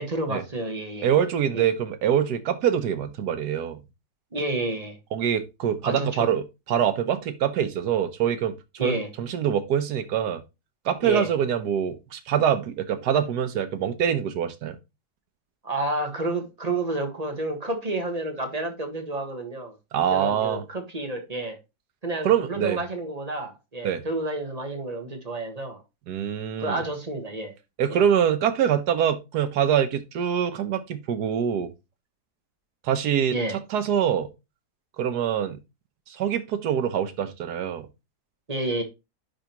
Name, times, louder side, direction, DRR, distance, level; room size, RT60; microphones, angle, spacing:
voice 1, 0.0-1.1 1.5-1.6 4.3-5.0 5.8-6.3 8.8-9.1 11.0-11.3 15.6-19.7 20.1-21.6 22.0-25.8 26.6-27.5 27.9-28.0 33.3-33.6 38.5-38.8, right 2 dB, 25° right, 1.2 m, -30 dB
voice 2, 1.0-3.8 5.1-10.4 10.8-14.8 19.9-20.6 22.2-22.8 23.8-24.0 26.1-26.8 27.8-31.7 32.8-34.3 35.0-35.6 36.1-37.9, right 9 dB, 85° right, 1.4 m, -24 dB
10.5 x 3.6 x 2.9 m
omnidirectional pair, 1.7 m